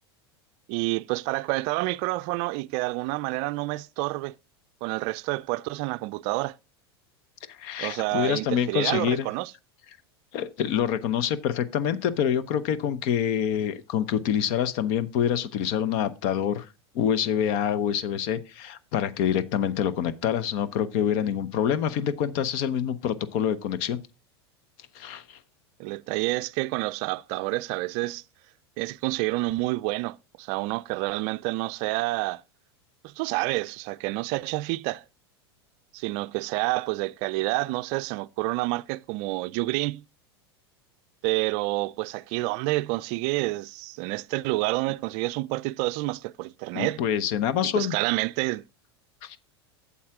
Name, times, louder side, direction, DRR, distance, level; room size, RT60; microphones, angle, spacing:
voice 1, 0.7-4.3 4.8-6.5 7.8-9.5 25.8-28.2 28.8-32.4 33.0-35.0 35.9-40.0 41.2-47.0 47.6-48.6, right 21 dB, 55° right, 0.4 m, -28 dB
voice 2, 7.5-9.3 10.3-16.7 16.9-24.0 24.9-25.4 46.7-48.0 49.2-49.4, left 9 dB, 55° left, 0.9 m, -26 dB
8.5 x 7.2 x 3.6 m
hypercardioid pair, 95°, 14 cm